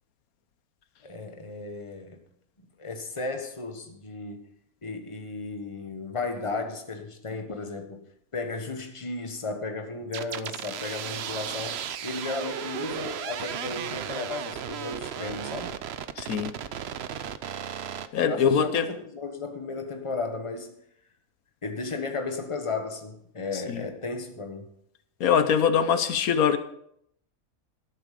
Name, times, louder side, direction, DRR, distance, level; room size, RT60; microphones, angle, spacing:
voice 1, 1.0-2.2 2.8-4.5 4.8-8.0 8.3-15.8 18.2-20.7 21.6-24.7, left 3 dB, 20° left, 1.3 m, -34 dB
sound 1, 10.1-18.1, right 8 dB, 55° right, 0.8 m, -35 dB
voice 2, 16.2-16.5 18.1-18.8 23.5-23.8 25.2-26.6, left 7 dB, 80° left, 1.3 m, -23 dB
12.5 x 11.5 x 5.1 m
omnidirectional pair, 1.5 m